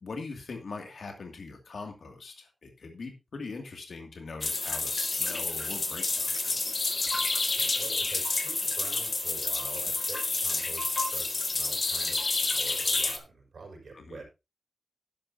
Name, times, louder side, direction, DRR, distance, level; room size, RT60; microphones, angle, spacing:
voice 1, 0.0-6.9 13.9-14.2, left 4 dB, 70° left, 3 dB, 2.4 m, -41 dB
sound 1, 4.4-13.2, left 3 dB, 40° left, 1.8 m, -29 dB
voice 2, 7.6-14.2, right 4 dB, 70° right, 1 dB, 6.0 m, -46 dB
12.0 x 11.5 x 2.8 m, 0.25 s
wide cardioid pair, 135°, 0 cm